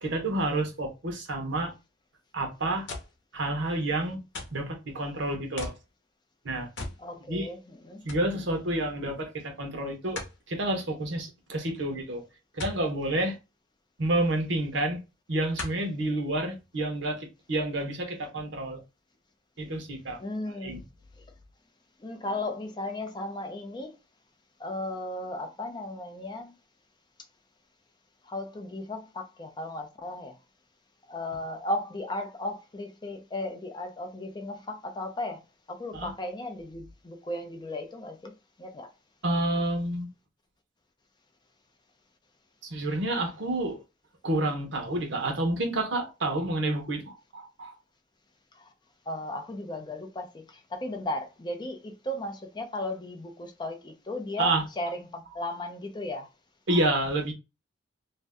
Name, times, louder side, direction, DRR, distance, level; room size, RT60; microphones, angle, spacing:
voice 1, 0.0-1.7 2.3-2.9 3.3-4.2 4.5-5.7 6.4-6.7 7.3-7.5 8.0-10.2 10.5-12.2 12.5-13.4 14.0-15.0 15.3-18.8 19.6-20.2 20.6-20.8 35.9-36.1 39.2-40.1 42.6-43.8 44.2-47.8 54.4-54.6 56.7-57.3, right 1 dB, 75° right, 0.8 m, -29 dB
sound 1, 2.9-3.2 4.3-4.7 5.6-5.9 6.8-7.0 7.4-7.5 8.1-8.3 10.2-10.4 12.6-12.8 14.3-14.4 15.6-15.9 16.6-16.7, left 2 dB, 70° left, 0.8 m, -37 dB
voice 2, 7.0-8.1 20.2-20.9 21.2-21.3 22.0-24.0 24.6-26.6 28.2-30.4 31.1-38.9 48.5-48.7 49.1-56.3, left 1 dB, 25° left, 0.4 m, -36 dB
2.6 x 2.1 x 3.4 m
head